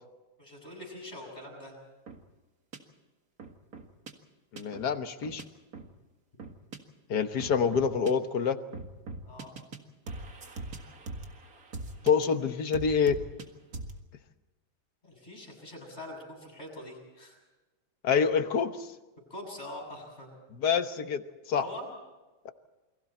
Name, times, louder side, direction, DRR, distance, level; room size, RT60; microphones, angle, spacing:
voice 1, 0.4-1.8 5.9-6.0 9.2-9.6 12.0-12.3 15.0-17.4 19.3-20.3 21.6-21.9, left 1 dB, 30° left, 1 dB, 7.4 m, -44 dB
sound 1, 2.1-2.2 2.7-2.8 3.4-4.1 4.6-4.9 5.2-5.4 5.7-5.9 6.4-6.8 7.4-8.1 8.7-9.8 10.1-12.2 12.7-13.5 13.7-14.0, right 3 dB, 45° right, 2.1 m, -41 dB
voice 2, 4.5-5.4 7.1-8.6 12.0-13.2 18.0-18.9 20.6-21.2 21.5-21.6 22.4-22.5, left 6 dB, 55° left, 8 dB, 1.6 m, -26 dB
29.0 x 23.0 x 4.4 m, 1.2 s
omnidirectional pair, 2.3 m